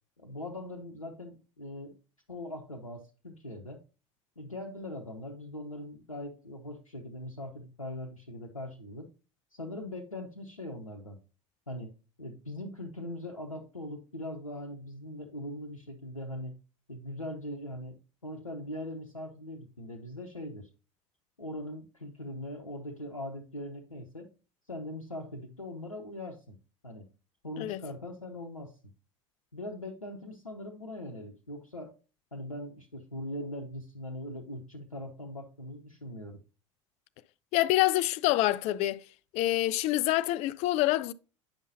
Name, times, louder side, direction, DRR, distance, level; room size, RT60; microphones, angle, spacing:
voice 1, 0.2-1.9 2.3-3.8 4.4-9.1 9.5-11.2 11.7-11.9 12.2-16.5 16.9-20.7 21.4-24.3 24.7-26.6 26.8-27.1 27.4-28.7 29.5-32.0 32.3-36.4, left 1 dB, 90° left, 0.7 m, -41 dB
voice 2, 37.5-39.0 39.3-41.1, left 16 dB, 40° left, 0.4 m, -26 dB
8.8 x 5.4 x 2.6 m
figure-of-eight pair, 75°, 17 cm